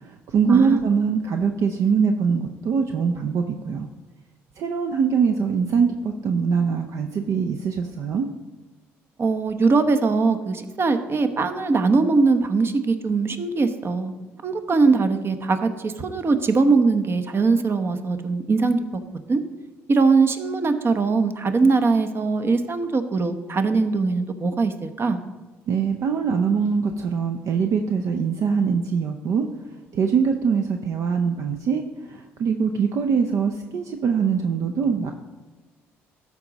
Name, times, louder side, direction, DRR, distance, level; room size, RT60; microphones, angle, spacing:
voice 1, 0.0-3.9 4.6-8.3 25.7-29.5 29.9-35.1, right 6 dB, 60° right, 5 dB, 0.6 m, -23 dB
voice 2, 9.2-14.1 14.4-19.0 19.3-19.4 19.9-25.2, right 4 dB, 40° right, 8 dB, 0.9 m, -21 dB
13.0 x 4.9 x 4.0 m, 1.3 s
hypercardioid pair, 60°, 6 cm